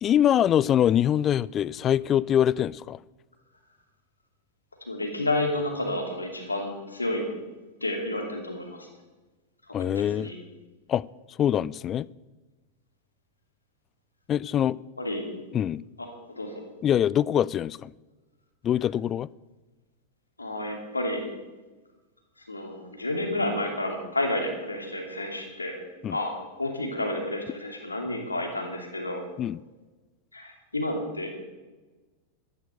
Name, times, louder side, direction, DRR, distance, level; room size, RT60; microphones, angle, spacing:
voice 1, 0.0-3.0 9.7-10.3 10.9-11.0 11.4-12.1 14.3-14.8 15.5-15.8 16.8-17.9 18.6-19.3 26.0-26.2 29.4-29.6, left 10 dB, 30° left, 23 dB, 0.3 m, -24 dB
voice 2, 4.9-7.2 7.8-8.9 9.8-10.4 15.0-15.2 16.0-16.5 20.4-21.2 22.5-25.8 26.1-26.3 26.6-29.2 30.3-31.3, left 1 dB, 80° left, 3 dB, 2.7 m, -30 dB
13.0 x 11.0 x 6.7 m, 1.2 s
figure-of-eight pair, 90°, 0 cm